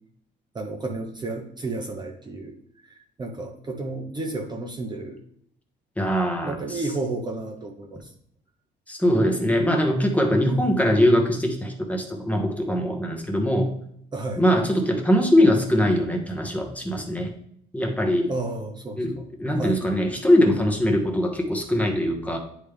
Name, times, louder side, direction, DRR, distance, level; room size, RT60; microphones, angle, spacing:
voice 1, 0.5-2.6 2.8-5.2 6.4-8.1 10.5-10.7 14.1-14.4 18.3-19.3 19.6-19.8, right 2 dB, 20° right, 2 dB, 0.7 m, -32 dB
voice 2, 6.0-6.8 8.9-13.7 14.4-17.3 17.7-18.3 19.0-22.4, equal, 5° left, 2 dB, 0.9 m, -22 dB
9.9 x 3.3 x 3.4 m, 0.69 s
cardioid pair, 130°, 19 cm